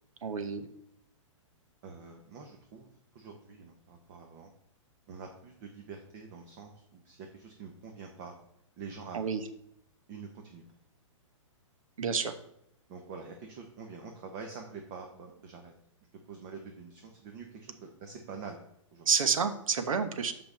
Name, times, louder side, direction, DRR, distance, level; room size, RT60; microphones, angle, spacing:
voice 1, 0.2-0.7 9.1-9.4 12.0-12.3 19.1-20.3, right 6 dB, 90° right, 9 dB, 1.1 m, -29 dB
voice 2, 1.8-2.9 3.1-4.5 5.1-8.3 8.8-9.2 10.1-10.6 12.9-15.7 16.3-18.6 18.9-19.1, right 5 dB, 35° right, 3 dB, 1.0 m, -46 dB
5.7 x 5.3 x 6.7 m, 0.75 s
hypercardioid pair, 160°, 17 cm